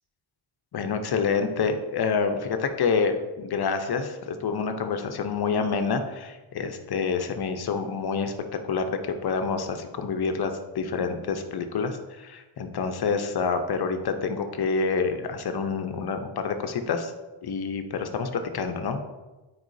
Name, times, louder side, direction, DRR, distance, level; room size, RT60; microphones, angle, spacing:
voice 1, 0.7-8.3 8.7-17.1 17.4-19.0, left 5 dB, 50° left, 7 dB, 0.8 m, -27 dB
9.3 x 4.8 x 2.7 m, 1.1 s
cardioid pair, 100°, 49 cm